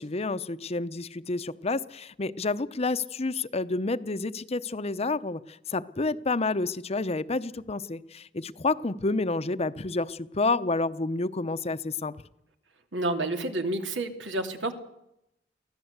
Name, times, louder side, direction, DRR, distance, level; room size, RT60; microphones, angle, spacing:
voice 1, 0.0-12.1, left 3 dB, 35° left, 13 dB, 0.8 m, -29 dB
voice 2, 12.9-14.7, right 2 dB, 90° right, 6 dB, 2.8 m, -29 dB
24.0 x 16.0 x 8.1 m, 0.83 s
head